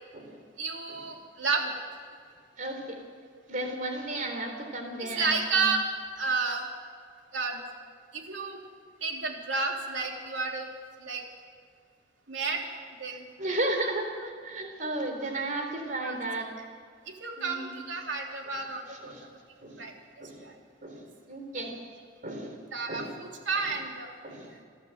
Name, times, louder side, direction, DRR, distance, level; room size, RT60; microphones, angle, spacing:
voice 1, 0.6-1.7 5.0-5.8 6.2-6.6 7.3-7.6 8.1-8.6 9.0-10.7 11.0-11.2 12.3-12.6 13.0-13.5 16.0-16.2 17.2-19.1 19.8-19.9 20.4-20.5 22.7-24.1, right 4 dB, 75° right, 1 dB, 3.1 m, -31 dB
voice 2, 2.6-3.0 3.5-5.7 13.4-16.5 17.4-17.8 18.9-19.2 19.6-19.9 20.2-20.5 20.8-21.8 22.2-22.6 22.9-23.1 23.6-23.7 24.2-24.6, right 1 dB, 45° right, 4 dB, 3.7 m, -34 dB
27.5 x 12.0 x 8.0 m, 2.1 s
head